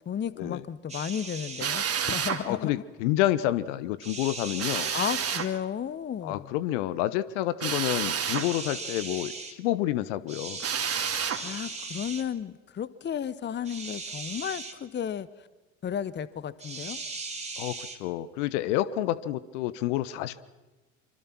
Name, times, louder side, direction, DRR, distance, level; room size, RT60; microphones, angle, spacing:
voice 1, 0.0-2.7 4.9-6.6 11.4-15.3 15.8-17.0, left 8 dB, 25° left, 18 dB, 1.0 m, -33 dB
sound 1, 0.9-1.7 4.0-5.5 8.2-9.5 10.3-12.2 13.6-14.8 16.6-18.0, right 3 dB, 15° right, 3.1 m, -38 dB
Drill, 1.6-2.4 4.6-5.5 7.6-8.5 10.6-11.4, right 8 dB, 35° right, 2.6 m, -29 dB
voice 2, 2.5-4.9 6.2-10.6 17.6-20.4, left 14 dB, 60° left, 16 dB, 1.1 m, -29 dB
25.0 x 25.0 x 6.1 m, 1.2 s
figure-of-eight pair, 60°, 40 cm